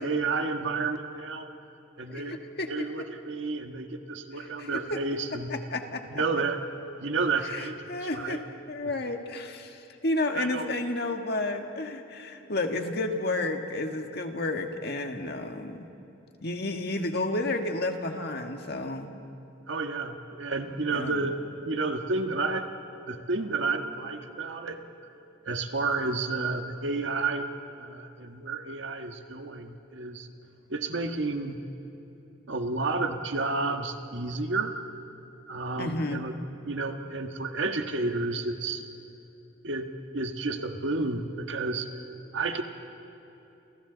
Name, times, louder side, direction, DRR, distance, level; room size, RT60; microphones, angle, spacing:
voice 1, 0.0-1.5 2.0-2.4 2.7-5.5 6.1-6.6 7.0-8.4 10.3-10.7 19.7-22.7 23.1-24.8 25.4-27.5 27.8-30.3 30.7-31.6 32.5-34.7 35.5-36.3 36.7-38.8 39.6-39.9 40.1-41.9 42.3-42.6, right 3 dB, 85° right, 5 dB, 1.6 m, -31 dB
voice 2, 2.1-2.7 4.3-5.0 5.5-6.2 7.4-8.4 8.7-15.9 16.4-19.1 20.9-21.3 35.8-36.2, left 2 dB, 60° left, 4 dB, 1.7 m, -31 dB
30.0 x 28.5 x 4.1 m, 2.9 s
head